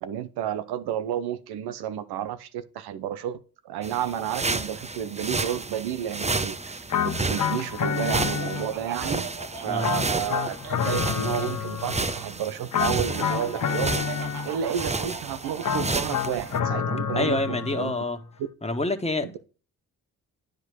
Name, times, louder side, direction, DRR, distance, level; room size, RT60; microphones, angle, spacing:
voice 1, 0.0-3.4 3.6-9.3 9.6-10.6 10.8-14.1 14.4-17.9, right 10 dB, 90° right, 1.0 m, -31 dB
sound 1, 3.8-16.6, right 3 dB, 20° right, 0.9 m, -32 dB
sound 2, 6.9-9.0 9.8-12.2 12.7-14.8 15.6-18.0, left 7 dB, 55° left, 1.1 m, -29 dB
Laughter, 7.8-11.5 13.0-16.0, right 6 dB, 60° right, 1.8 m, -39 dB
voice 2, 17.1-18.2 18.6-19.4, left 2 dB, 15° left, 1.8 m, -27 dB
10.0 x 5.2 x 6.3 m
supercardioid pair, 50°, 37 cm